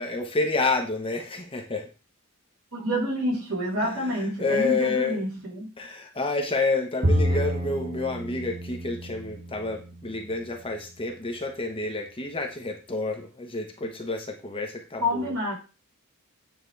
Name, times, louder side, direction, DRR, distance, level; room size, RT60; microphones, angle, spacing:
voice 1, 0.0-1.9 3.8-5.2 5.8-15.3, left 3 dB, 25° left, 1.1 m, -29 dB
voice 2, 2.7-5.7 7.3-7.4 15.0-15.5, equal, 65° right, 4.0 m, -28 dB
Bowed string instrument, 7.0-10.4, equal, 40° right, 1.0 m, -29 dB
9.2 x 4.1 x 3.3 m
head